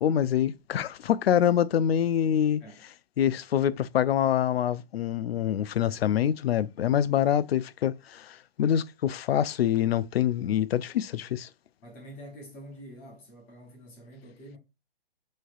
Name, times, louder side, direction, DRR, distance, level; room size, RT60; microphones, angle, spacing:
voice 1, 0.0-2.6 3.2-11.5, left 10 dB, 75° left, 0.4 m, -25 dB
voice 2, 11.8-14.6, equal, 5° left, 0.4 m, -46 dB
5.3 x 3.2 x 2.3 m
hypercardioid pair, 145°, 31 cm